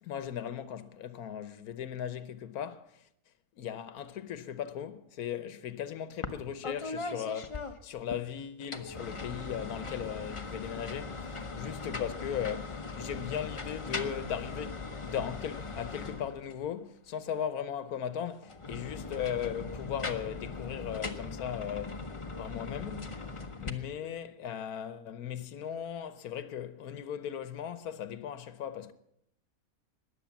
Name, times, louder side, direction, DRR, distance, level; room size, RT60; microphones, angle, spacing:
voice 1, 0.0-3.0 3.6-22.1 22.4-23.2 23.6-28.9, left 9 dB, 90° left, 1.4 m, -38 dB
sound 1, 6.2-6.4 6.6-8.2 8.6-16.7 18.4-23.7, left 3 dB, 25° left, 0.9 m, -39 dB
20.5 x 7.9 x 7.1 m
omnidirectional pair, 1.5 m